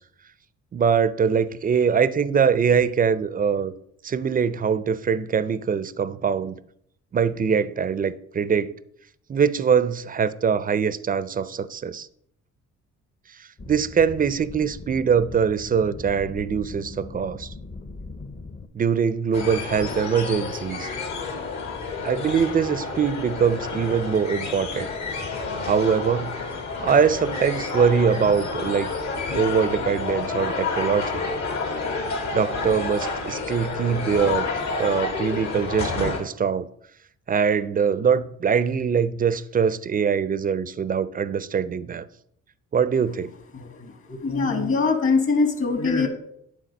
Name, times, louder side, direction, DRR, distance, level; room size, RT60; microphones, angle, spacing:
voice 1, 0.7-3.7 4.0-6.6 7.1-8.7 9.3-12.1 13.7-17.5 18.7-20.9 22.0-24.9 25.6-26.3 26.8-28.9 29.3-31.2 32.3-34.5 34.8-36.7 37.3-42.1 42.7-43.3, right 6 dB, 30° right, 0.4 m, -23 dB
sound 1, 13.6-18.7, left 3 dB, 25° left, 0.7 m, -39 dB
sound 2, 19.3-36.2, left 4 dB, 65° left, 2.0 m, -29 dB
voice 2, 43.5-46.1, left 4 dB, 45° left, 1.6 m, -23 dB
9.2 x 3.8 x 5.2 m
cardioid pair, 90°, 30 cm